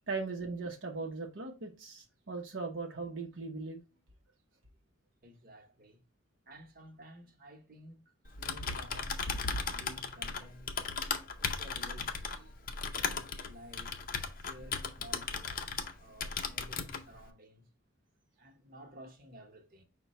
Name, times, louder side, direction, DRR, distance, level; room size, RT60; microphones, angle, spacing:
voice 1, 0.1-3.8, right 3 dB, 65° right, 0.7 m, -39 dB
voice 2, 5.2-6.0 6.4-10.9 11.4-12.5 12.9-13.9 14.3-17.7 18.4-19.8, equal, 45° right, 1.0 m, -54 dB
Typing, 8.3-15.9 16.2-17.0, left 5 dB, 45° left, 0.5 m, -36 dB
5.7 x 2.2 x 4.1 m
head